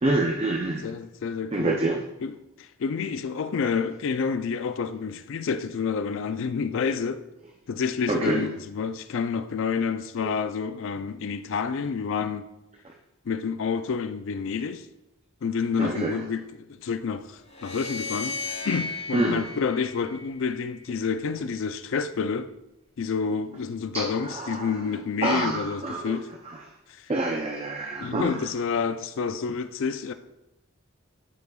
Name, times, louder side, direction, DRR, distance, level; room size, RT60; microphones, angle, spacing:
voice 1, 0.0-0.9 1.5-2.0 8.1-8.5 10.2-10.3 12.8-12.9 15.8-16.2 19.1-19.5 23.9-24.7 25.2-26.2 27.1-28.4, right 2 dB, 30° right, 0.5 m, -27 dB
voice 2, 0.8-1.8 2.2-7.2 7.7-12.4 13.3-14.9 15.4-18.4 18.6-22.5 23.0-26.3 26.9-27.1 28.0-30.1, left 5 dB, 65° left, 0.4 m, -29 dB
sound 1, 17.5-20.8, left 3 dB, 30° left, 1.0 m, -35 dB
10.5 x 4.9 x 2.3 m
head